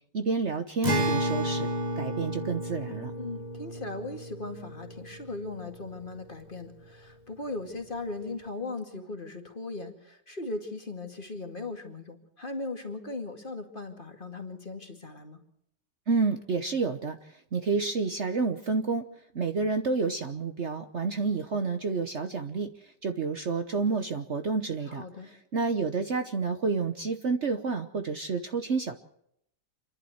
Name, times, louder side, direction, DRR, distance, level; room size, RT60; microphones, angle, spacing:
voice 1, 0.1-1.7 2.0-3.1 16.1-19.1 19.3-28.9, right 4 dB, 45° right, 7 dB, 1.2 m, -29 dB
Acoustic guitar, 0.8-6.3, right 1 dB, 25° right, 1.6 m, -32 dB
voice 2, 3.2-15.4 24.9-25.3, left 2 dB, 30° left, 4 dB, 2.4 m, -38 dB
28.5 x 11.5 x 7.9 m, 0.73 s
omnidirectional pair, 1.8 m